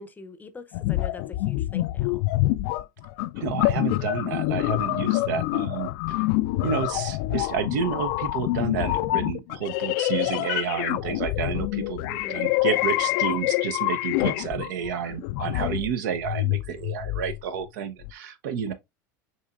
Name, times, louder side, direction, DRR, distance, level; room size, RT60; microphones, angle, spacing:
voice 1, 0.0-2.2 12.1-12.4, left 3 dB, 15° left, 0.7 m, -43 dB
sound 1, 0.7-17.4 18.0-18.1, left 18 dB, 60° left, 0.4 m, -26 dB
voice 2, 3.4-6.3 6.6-18.7, right 7 dB, 70° right, 0.8 m, -30 dB
6.4 x 3.0 x 2.4 m
hypercardioid pair, 85°, 10 cm